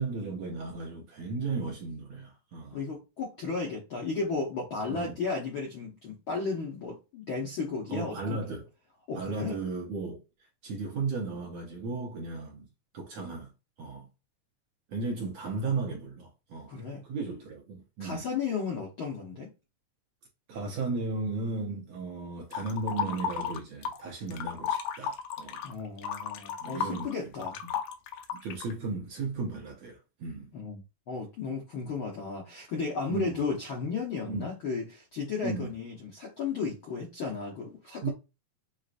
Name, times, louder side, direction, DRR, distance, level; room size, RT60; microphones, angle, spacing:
voice 1, 0.0-2.8 4.9-5.1 7.9-8.7 9.1-10.2 10.6-12.7 12.9-13.5 13.8-14.1 14.9-16.7 17.0-18.2 20.5-25.6 26.6-27.1 27.6-27.7 28.4-30.5 33.1-33.5 34.3-34.5 35.4-35.7 38.0-38.1, right 3 dB, 65° right, 1.7 m, -35 dB
voice 2, 2.7-8.4 9.1-9.6 16.7-17.0 18.0-19.5 25.6-27.6 30.5-30.8 31.1-38.1, left 4 dB, 65° left, 1.2 m, -34 dB
sound 1, 22.5-24.0 24.3-28.7, left 8 dB, 85° left, 2.4 m, -34 dB
7.6 x 2.6 x 2.6 m
omnidirectional pair, 4.0 m